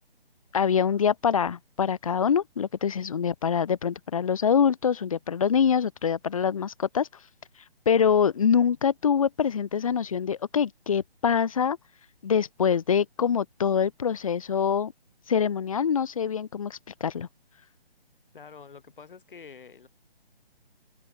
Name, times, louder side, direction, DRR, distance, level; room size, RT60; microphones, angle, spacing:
voice 1, 0.5-7.1 7.9-11.8 12.2-14.9 15.3-17.3, left 7 dB, 35° left, 0.5 m, -24 dB
voice 2, 18.3-19.9, left 6 dB, 55° left, 4.1 m, -47 dB
figure-of-eight pair, 145°, 31 cm